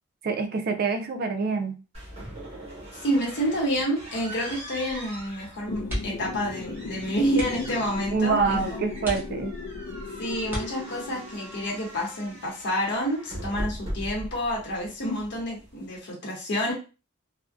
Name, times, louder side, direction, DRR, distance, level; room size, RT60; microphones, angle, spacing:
voice 1, 0.2-1.8 8.1-9.5, right 4 dB, 50° right, 6 dB, 0.4 m, -26 dB
sound 1, 1.9-16.0, right 1 dB, 30° right, 1.1 m, -41 dB
voice 2, 2.9-8.6 10.2-16.7, equal, 60° left, -3 dB, 0.8 m, -28 dB
sound 2, 5.7-11.6, left 5 dB, 75° left, 0.4 m, -38 dB
sound 3, 5.8-6.4 6.7-6.8 7.3-7.8 8.4-8.5 9.0-9.8 10.4-11.2 12.8-13.1 13.5-13.6, equal, 10° right, 0.8 m, -35 dB
2.5 x 2.0 x 2.4 m, 0.33 s
head